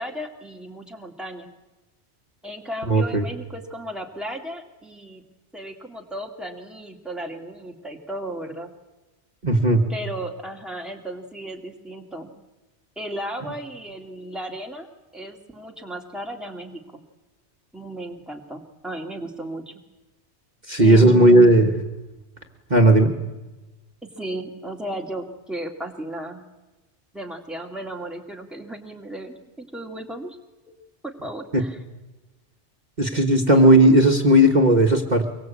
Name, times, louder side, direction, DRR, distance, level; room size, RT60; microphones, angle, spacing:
voice 1, 0.0-1.5 2.4-5.2 5.5-8.7 9.9-12.3 13.0-14.9 15.1-17.0 17.7-19.7 20.8-21.5 24.0-26.4 27.1-30.4 31.0-31.8 33.5-33.7, right 1 dB, ahead, 1 dB, 2.4 m, -35 dB
voice 2, 2.9-3.2 9.4-9.8 20.7-21.7 22.7-23.1 31.5-31.6 33.0-35.3, right 1 dB, 40° right, 2 dB, 1.6 m, -15 dB
24.0 x 22.5 x 8.5 m, 1.1 s
omnidirectional pair, 1.2 m